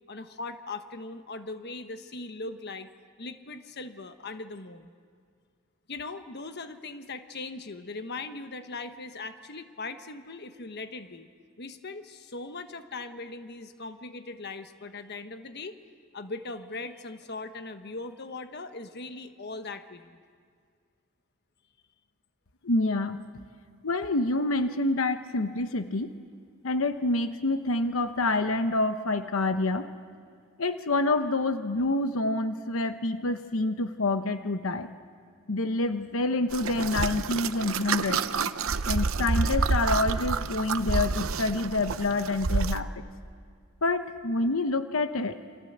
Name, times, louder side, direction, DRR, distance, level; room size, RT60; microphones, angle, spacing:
voice 1, 0.1-2.9 3.2-4.9 5.9-11.3 11.6-15.7 16.1-20.2, left 3 dB, 55° left, 9 dB, 1.2 m, -39 dB
voice 2, 22.6-23.2 23.8-26.1 26.6-29.9 30.6-34.9 35.5-38.2 38.9-43.0 43.8-45.4, left 2 dB, 80° left, 9 dB, 1.0 m, -27 dB
sound 1, 36.5-42.8, right 4 dB, 80° right, 0.8 m, -28 dB
29.0 x 25.0 x 8.0 m, 2.1 s
head